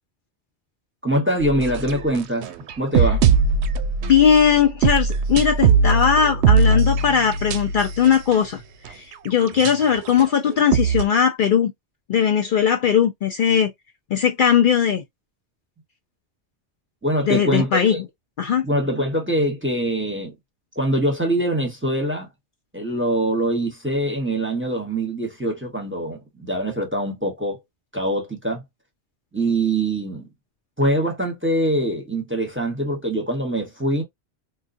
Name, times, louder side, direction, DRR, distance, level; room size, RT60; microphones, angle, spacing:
voice 1, 1.0-3.4 17.0-18.0 18.6-20.3 20.8-22.3 22.7-27.6 27.9-28.6 29.3-30.3 30.8-34.0, right 1 dB, 10° right, 0.8 m, -23 dB
sound 1, 1.4-8.4 8.9-9.0 9.6-11.0, right 5 dB, 85° right, 0.8 m, -20 dB
voice 2, 4.0-8.6 8.9-11.7 12.1-13.7 14.1-15.0 17.3-17.9 18.4-18.6, left 7 dB, 60° left, 0.6 m, -19 dB
3.9 x 2.3 x 2.5 m
omnidirectional pair, 1.1 m